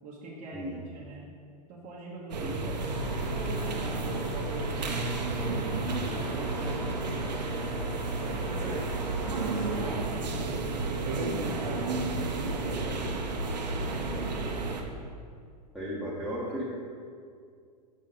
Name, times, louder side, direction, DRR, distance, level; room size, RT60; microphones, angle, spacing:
voice 1, 0.0-0.7 0.9-1.3 1.7-5.7 6.0-7.7 8.2-14.7, right 3 dB, 35° right, -6 dB, 1.1 m, -43 dB
voice 2, 0.5-0.8 2.4-2.6 8.6-9.0 15.7-16.6, equal, ahead, -8 dB, 1.1 m, -35 dB
sound 1, 2.3-14.8, right 3 dB, 85° right, 0.8 m, -32 dB
sound 2, 2.8-10.0, left 3 dB, 45° left, 1.3 m, -43 dB
6.3 x 5.4 x 4.0 m, 2.2 s
hypercardioid pair, 105°, 21 cm